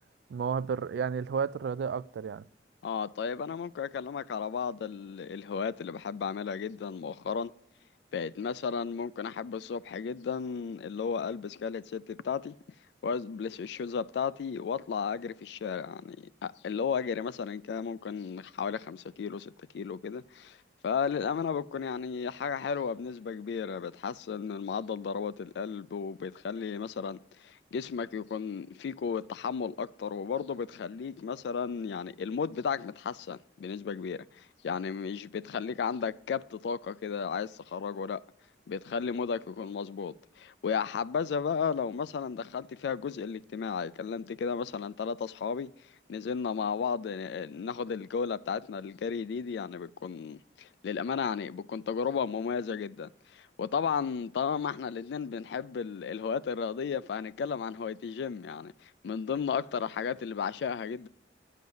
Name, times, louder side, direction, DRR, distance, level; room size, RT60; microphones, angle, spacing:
voice 1, 0.3-2.4, right 6 dB, 70° right, 0.3 m, -32 dB
voice 2, 2.8-7.5 8.1-12.6 13.0-20.6 20.8-38.2 38.7-45.7 46.1-61.1, left 6 dB, 70° left, 0.3 m, -34 dB
10.5 x 9.2 x 5.5 m
head